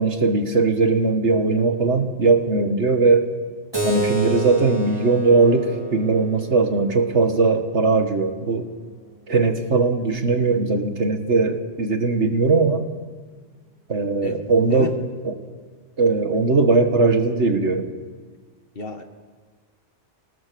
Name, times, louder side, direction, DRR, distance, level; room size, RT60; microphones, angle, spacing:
voice 1, 0.0-3.3 3.8-8.7 9.3-12.8 13.9-15.0 15.2-15.4 16.0-17.9, right 3 dB, 70° right, 6 dB, 2.2 m, -19 dB
Keyboard (musical), 3.7-8.8, right 2 dB, 20° right, 4.0 m, -30 dB
voice 2, 14.2-14.4 14.7-14.9 18.8-19.0, left 5 dB, 50° left, 6 dB, 1.9 m, -30 dB
27.5 x 19.0 x 7.1 m, 1.5 s
omnidirectional pair, 1.2 m